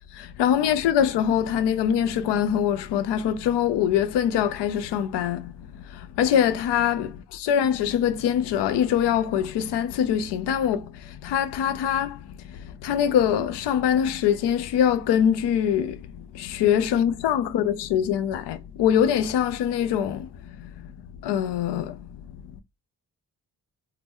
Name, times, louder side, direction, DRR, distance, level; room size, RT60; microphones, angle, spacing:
voice 1, 0.1-5.5 5.9-12.2 12.5-20.3 20.6-20.7 21.2-22.1, left 9 dB, 65° left, 0.6 m, -23 dB
2.9 x 2.1 x 3.5 m
hypercardioid pair, 40°, 46 cm